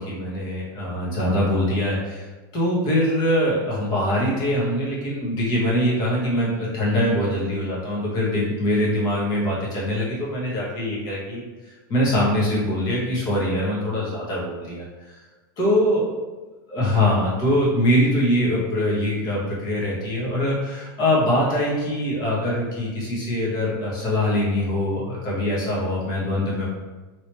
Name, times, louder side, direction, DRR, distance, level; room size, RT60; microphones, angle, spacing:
voice 1, 0.0-11.4 11.9-15.1 15.6-16.1 16.7-26.7, left 1 dB, 35° left, -6 dB, 1.4 m, -23 dB
3.0 x 3.0 x 3.1 m, 1.2 s
supercardioid pair, 145°, 12 cm